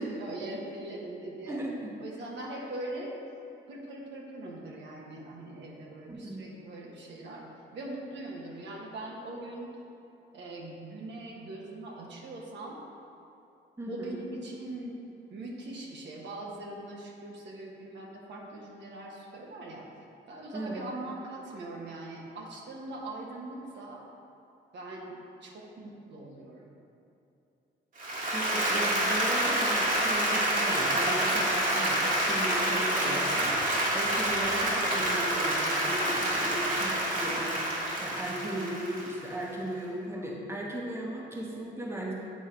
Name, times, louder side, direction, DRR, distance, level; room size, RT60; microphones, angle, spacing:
voice 1, 0.0-1.6 2.0-3.1 3.7-9.7 10.3-12.8 13.9-14.9 15.3-19.9 20.3-24.0 24.7-25.2 25.4-26.7, right 2 dB, 65° right, -2 dB, 1.0 m, -41 dB
voice 2, 1.5-1.9 6.1-6.4 13.8-14.1 20.5-20.8 28.3-42.1, right 1 dB, 15° right, -3 dB, 1.1 m, -36 dB
Applause, 28.0-39.3, right 1 dB, 40° right, 1.4 m, -28 dB
8.5 x 3.6 x 4.5 m, 2.8 s
cardioid pair, 90°, 20 cm